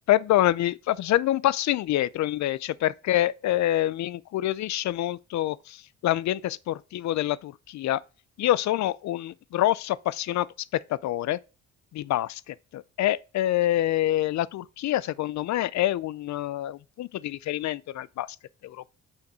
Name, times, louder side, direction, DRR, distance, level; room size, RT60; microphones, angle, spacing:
voice 1, 0.1-8.0 8.4-10.5 10.7-11.4 11.9-18.3 18.6-18.9, left 14 dB, 65° left, 0.5 m, -26 dB
6.4 x 5.8 x 4.6 m
cardioid pair, 90°, 30 cm